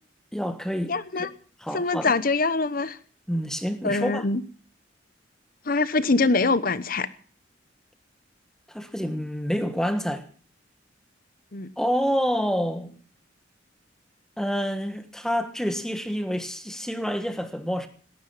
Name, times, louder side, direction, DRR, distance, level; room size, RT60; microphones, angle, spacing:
voice 1, 0.3-1.3 1.6-2.1 3.3-4.2 8.7-10.3 11.8-12.9 14.4-17.9, equal, 5° left, 1.5 m, -28 dB
voice 2, 0.9-1.3 1.7-3.0 3.8-4.4 5.7-7.1 11.5-11.7, left 3 dB, 50° left, 0.9 m, -24 dB
18.0 x 13.0 x 5.6 m
head